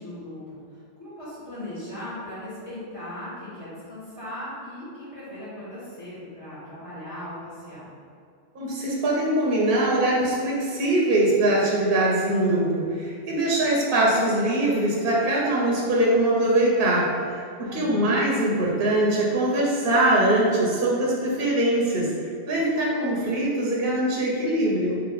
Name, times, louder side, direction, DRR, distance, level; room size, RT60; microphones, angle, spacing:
voice 1, 0.0-7.9 17.6-18.1, left 1 dB, 65° left, -11 dB, 1.9 m, -38 dB
voice 2, 8.5-22.1 22.5-24.9, right 1 dB, 50° right, -4 dB, 0.9 m, -22 dB
3.3 x 3.2 x 3.9 m, 2.3 s
omnidirectional pair, 1.3 m